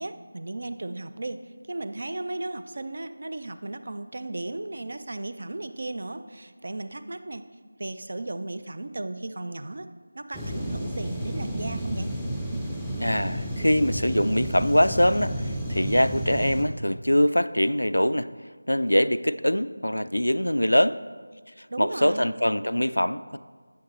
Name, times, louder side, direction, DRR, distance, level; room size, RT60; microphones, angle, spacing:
voice 1, 0.0-1.4 1.7-7.4 7.8-9.9 10.1-12.1 21.7-22.3, right 2 dB, 50° right, 10 dB, 0.4 m, -35 dB
sound 1, 10.3-16.6, right 1 dB, ahead, 0.5 m, -31 dB
voice 2, 13.0-18.3 18.7-21.0 21.6-23.4, equal, 90° left, 14 dB, 0.3 m, -23 dB
9.3 x 7.0 x 3.1 m, 1.5 s
figure-of-eight pair, 165°, 0 cm